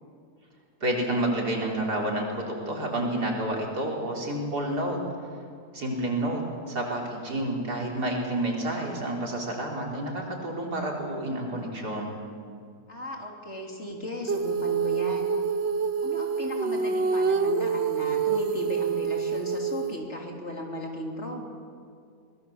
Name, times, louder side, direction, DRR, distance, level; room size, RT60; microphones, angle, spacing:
voice 1, 0.8-5.0 5.7-12.2, right 1 dB, 75° right, -1 dB, 4.2 m, -29 dB
voice 2, 12.9-15.3 16.0-21.4, left 1 dB, 45° left, 1 dB, 3.4 m, -36 dB
Female singing, 14.3-20.0, right 5 dB, 50° right, 1.0 m, -27 dB
23.0 x 20.0 x 7.1 m, 2.3 s
omnidirectional pair, 1.7 m